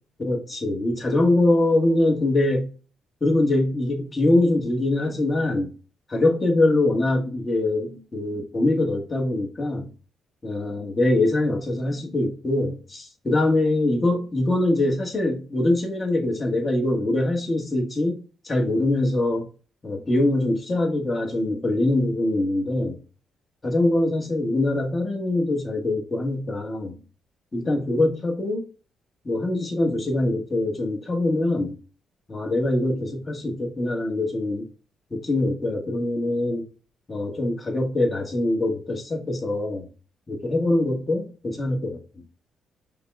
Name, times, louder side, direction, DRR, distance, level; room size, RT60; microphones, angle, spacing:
voice 1, 0.2-2.7 3.2-5.7 6.1-9.9 10.4-19.4 19.8-23.0 23.6-27.0 27.5-28.7 29.2-31.8 32.3-34.7 35.1-36.6 37.1-39.9 40.3-42.0, left 2 dB, 25° left, 1.4 m, -23 dB
5.5 x 2.3 x 4.1 m
cardioid pair, 90°, 0 cm